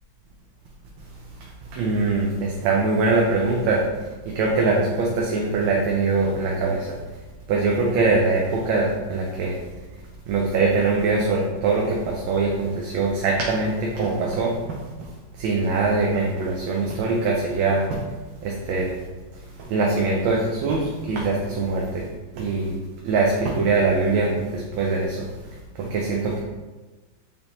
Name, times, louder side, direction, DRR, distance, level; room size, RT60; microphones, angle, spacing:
voice 1, 1.4-3.8 4.3-6.9 7.5-9.6 10.3-18.0 18.4-18.9 19.6-22.1 22.3-22.8 23.0-25.3 25.8-26.4, right 3 dB, 80° right, -2 dB, 1.4 m, -23 dB
5.1 x 2.7 x 2.9 m, 1.2 s
omnidirectional pair, 2.2 m